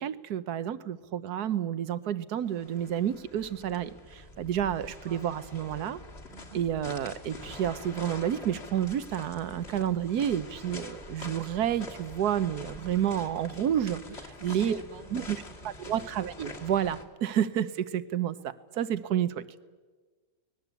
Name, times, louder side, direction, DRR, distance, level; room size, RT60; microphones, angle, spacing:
voice 1, 0.0-6.0 6.5-14.0 14.4-14.8 15.1-15.4 15.6-19.5, right 10 dB, 75° right, 14 dB, 1.5 m, -30 dB
sound 1, 2.5-17.1, left 2 dB, 40° left, 2.2 m, -45 dB
voice 2, 4.7-5.3 6.3-6.7 14.1-16.2, right 2 dB, 40° right, 8 dB, 1.7 m, -48 dB
24.5 x 20.0 x 8.3 m, 1.4 s
omnidirectional pair, 1.7 m